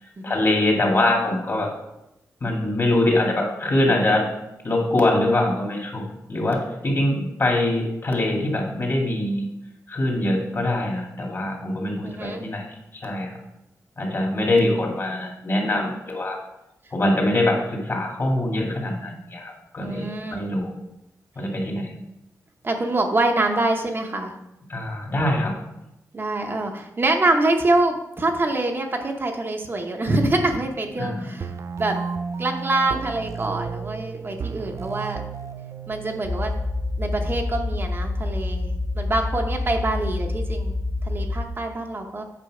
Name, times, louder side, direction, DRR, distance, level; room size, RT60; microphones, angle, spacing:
voice 1, 0.0-1.7 2.4-4.2 4.6-6.0 6.3-9.5 9.9-13.3 14.0-16.4 16.9-20.8 21.4-21.9 24.7-25.5 31.0-31.3, left 1 dB, 40° left, 0 dB, 2.2 m, -23 dB
voice 2, 12.0-12.4 19.8-20.4 22.6-24.3 26.1-31.5 31.8-31.9 32.4-35.2 35.9-36.5 37.0-40.8 41.0-42.2, right 2 dB, 35° right, 2 dB, 0.9 m, -25 dB
sound 1, 31.4-37.4, right 5 dB, 55° right, 0.4 m, -34 dB
sound 2, 36.2-41.5, left 2 dB, 20° left, 0.8 m, -27 dB
8.5 x 5.3 x 4.9 m, 0.90 s
wide cardioid pair, 110°, 6 cm